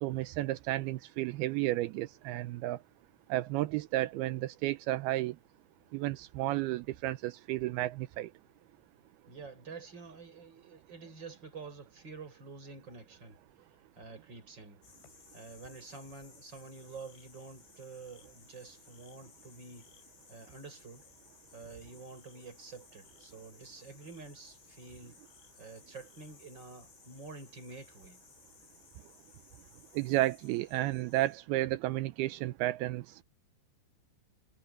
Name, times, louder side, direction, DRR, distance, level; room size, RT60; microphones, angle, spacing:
voice 1, 0.0-2.8 3.3-5.3 5.9-8.3 29.9-33.2, right 16 dB, 80° right, 2.3 m, -32 dB
voice 2, 9.3-13.4 13.9-14.8 15.3-19.9 20.3-21.1 21.5-25.2 25.6-28.2, right 4 dB, 25° right, 6.1 m, -48 dB
sound 1, 14.8-31.4, left 6 dB, 90° left, 8.2 m, -60 dB
omnidirectional pair, 5.3 m